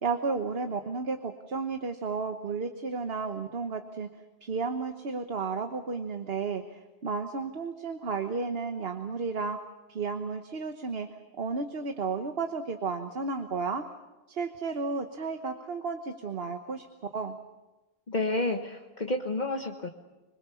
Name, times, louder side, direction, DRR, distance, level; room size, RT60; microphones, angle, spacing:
voice 1, 0.0-4.1 4.4-9.6 9.9-11.1 11.4-13.8 14.3-16.9 17.1-17.4, right 4 dB, 70° right, 6 dB, 1.4 m, -33 dB
voice 2, 18.1-19.9, left 2 dB, 45° left, 3 dB, 1.3 m, -30 dB
25.5 x 21.5 x 7.1 m, 1.1 s
omnidirectional pair, 1.0 m